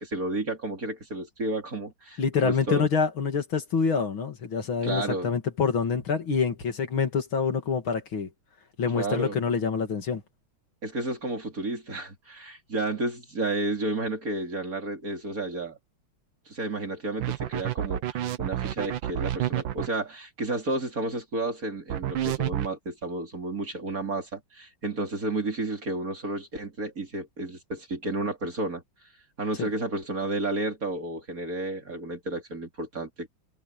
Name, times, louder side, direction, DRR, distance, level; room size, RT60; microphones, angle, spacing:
voice 1, 0.0-2.9 4.8-5.3 8.9-9.4 10.8-15.8 16.5-28.8 29.4-33.3, right 2 dB, 40° right, 4.0 m, -31 dB
voice 2, 2.2-8.3 8.8-10.2 29.6-29.7, left 5 dB, 70° left, 3.2 m, -26 dB
sound 1, 17.2-19.9 21.9-22.7, right 12 dB, 70° right, 1.6 m, -29 dB
omnidirectional pair, 2.3 m